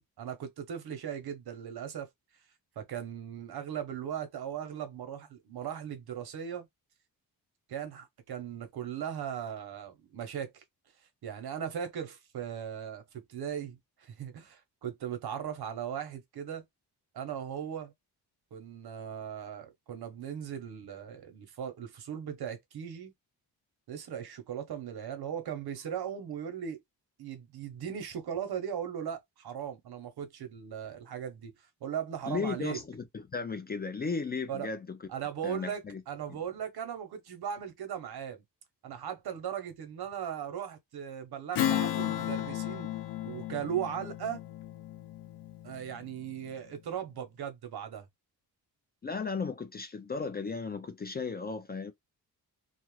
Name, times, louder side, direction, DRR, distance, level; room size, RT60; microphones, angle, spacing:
voice 1, 0.0-2.1 2.8-6.7 7.7-10.6 11.2-16.6 17.1-17.9 18.5-23.1 23.9-26.8 27.2-31.5 31.8-32.8 34.5-34.7 35.1-38.4 38.8-42.9 43.2-44.4 45.6-48.1, right 9 dB, 70° right, 0.8 m, -38 dB
voice 2, 32.3-35.0 35.4-36.0 36.3-36.4 49.0-51.9, left 4 dB, 25° left, 0.3 m, -35 dB
Strum, 41.5-46.4, left 11 dB, 85° left, 0.6 m, -34 dB
2.4 x 2.1 x 3.0 m
wide cardioid pair, 120°, 39 cm